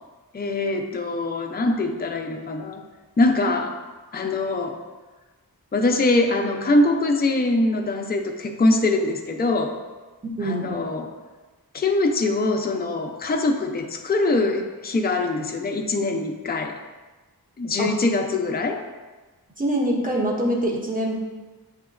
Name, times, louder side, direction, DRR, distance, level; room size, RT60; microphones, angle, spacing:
voice 1, 0.3-2.8 3.2-3.7 4.1-4.8 5.7-9.8 10.4-11.1 11.7-16.7 17.6-18.8, left 2 dB, 25° left, 3 dB, 0.5 m, -23 dB
voice 2, 10.2-10.8 17.8-17.9 19.6-21.2, right 1 dB, 25° right, -3 dB, 1.0 m, -24 dB
7.3 x 2.9 x 2.5 m, 1.3 s
wide cardioid pair, 60°, 37 cm